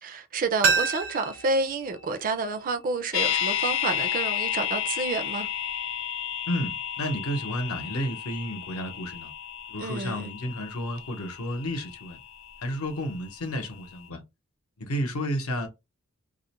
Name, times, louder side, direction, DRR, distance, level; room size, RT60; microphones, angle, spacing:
voice 1, 0.0-5.5 9.8-10.3, right 3 dB, 40° right, 0.4 m, -29 dB
sound 1, 0.6-3.4 3.7-3.8, right 5 dB, 70° right, 0.8 m, -29 dB
sound 2, 3.1-13.2 13.5-13.6, left 9 dB, 65° left, 0.4 m, -32 dB
voice 2, 6.5-9.3 9.7-12.2 12.6-14.2 14.8-15.7, equal, 85° left, 0.8 m, -31 dB
2.4 x 2.1 x 2.8 m
head